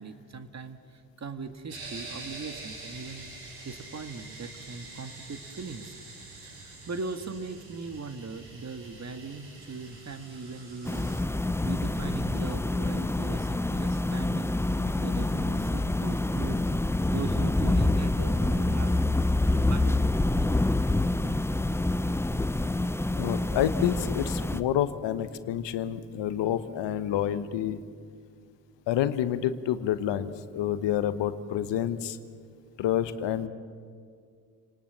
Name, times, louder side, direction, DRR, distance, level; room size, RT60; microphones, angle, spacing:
voice 1, 0.0-3.3 3.6-5.9 6.4-11.2 11.6-14.5 15.0-16.6 17.1-20.2, right 4 dB, 35° right, 10 dB, 1.8 m, -40 dB
sound 1, 1.7-11.2, right 2 dB, 70° right, 7.7 m, -45 dB
sound 2, 10.8-24.6, left 2 dB, 5° left, 0.8 m, -26 dB
voice 2, 23.2-27.8 28.9-32.2 32.8-33.5, left 11 dB, 65° left, 12 dB, 1.2 m, -28 dB
28.5 x 19.5 x 7.5 m, 2.2 s
hypercardioid pair, 50°, 47 cm